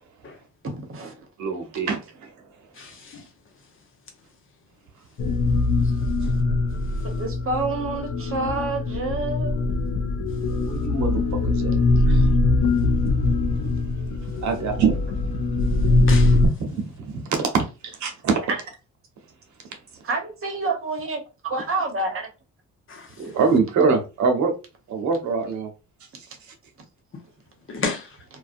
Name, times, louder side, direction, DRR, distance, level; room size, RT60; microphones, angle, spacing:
voice 1, 0.6-1.2 7.0-9.7 18.5-18.6 20.0-22.3, right 3 dB, 45° right, 0.9 m, -28 dB
voice 2, 1.4-2.3 6.2-6.3 10.4-11.7 12.1-12.3 12.6-13.1 13.6-13.8 14.3-15.0 15.7-16.1 16.4-18.4 23.2-24.5 24.9-25.7, right 5 dB, 70° right, 0.8 m, -25 dB
voice 3, 2.7-3.3 5.8-5.9 6.9-7.0 15.7-16.4 22.9-23.4 27.1-27.2 27.7-28.2, left 4 dB, 45° left, 0.9 m, -33 dB
sound 1, 5.2-16.5, left 2 dB, 80° left, 0.7 m, -22 dB
2.6 x 2.2 x 2.4 m
cardioid pair, 90°, 30 cm